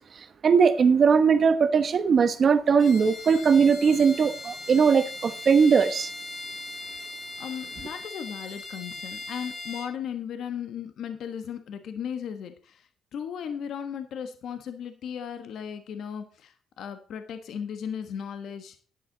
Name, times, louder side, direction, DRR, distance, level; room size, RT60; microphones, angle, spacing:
voice 1, 0.4-6.1, right 6 dB, 50° right, 1.1 m, -20 dB
Bowed string instrument, 2.8-10.0, left 2 dB, 45° left, 2.3 m, -39 dB
voice 2, 7.4-18.8, left 8 dB, 70° left, 1.3 m, -36 dB
10.5 x 9.9 x 4.0 m
cardioid pair, 90°, 0 cm